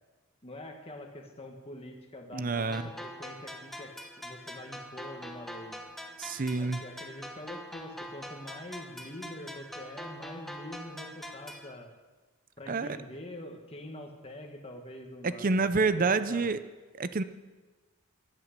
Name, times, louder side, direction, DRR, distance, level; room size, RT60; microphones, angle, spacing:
voice 1, 0.4-5.8 6.6-11.9 12.6-15.6 16.0-16.5, left 1 dB, 25° left, 2 dB, 1.7 m, -45 dB
voice 2, 2.3-2.9 6.2-6.8 12.7-13.0 15.2-16.6 17.0-17.2, right 4 dB, 40° right, 12 dB, 0.6 m, -28 dB
sound 1, 2.7-11.7, equal, ahead, 1.0 m, -44 dB
14.5 x 11.0 x 6.7 m, 1.3 s
head